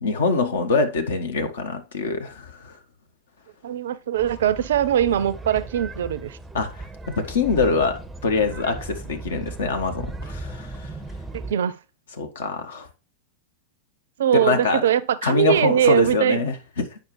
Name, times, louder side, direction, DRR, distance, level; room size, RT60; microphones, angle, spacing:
voice 1, 0.0-2.8 6.5-6.9 7.2-10.9 12.2-12.9 14.3-14.8 15.2-17.0, left 4 dB, 65° left, 1.1 m, -24 dB
voice 2, 3.6-6.4 11.3-11.8 14.2-16.4, right 10 dB, 60° right, 0.5 m, -21 dB
sound 1, 4.1-11.5, right 2 dB, 10° right, 0.6 m, -37 dB
9.2 x 5.3 x 3.1 m
figure-of-eight pair, 90°, 0 cm